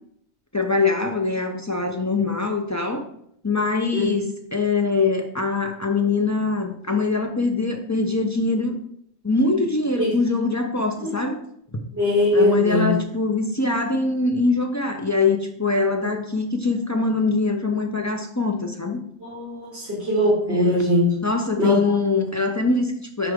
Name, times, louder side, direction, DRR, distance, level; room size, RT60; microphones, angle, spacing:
voice 1, 0.5-3.1 3.4-8.7 9.2-11.4 11.7-11.8 12.3-19.0 20.5-20.8 21.2-23.3, left 3 dB, 25° left, 3 dB, 0.3 m, -23 dB
voice 2, 11.9-12.9 16.0-16.1 19.2-21.0 21.6-21.8, left 1 dB, 70° right, -6 dB, 2.0 m, -21 dB
6.7 x 4.8 x 3.6 m, 0.70 s
omnidirectional pair, 1.2 m